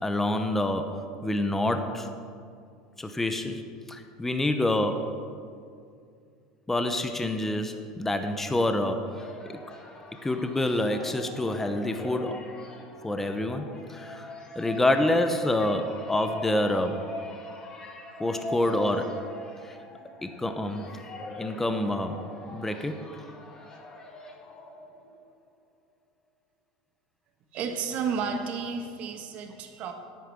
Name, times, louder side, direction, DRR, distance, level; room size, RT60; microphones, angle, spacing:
voice 1, 0.0-2.1 3.0-3.6 3.9-5.2 6.7-9.6 10.2-12.5 13.0-14.3 14.6-17.1 18.2-19.2 19.6-19.8 20.2-21.0 21.4-22.2 22.5-23.1, left 1 dB, 10° left, 7 dB, 0.9 m, -27 dB
sound 1, 8.6-25.3, left 1 dB, 25° left, 1.7 m, -42 dB
voice 2, 27.5-29.9, right 5 dB, 50° right, 5 dB, 1.6 m, -32 dB
10.0 x 8.6 x 7.2 m, 2.3 s
supercardioid pair, 115°, 3 cm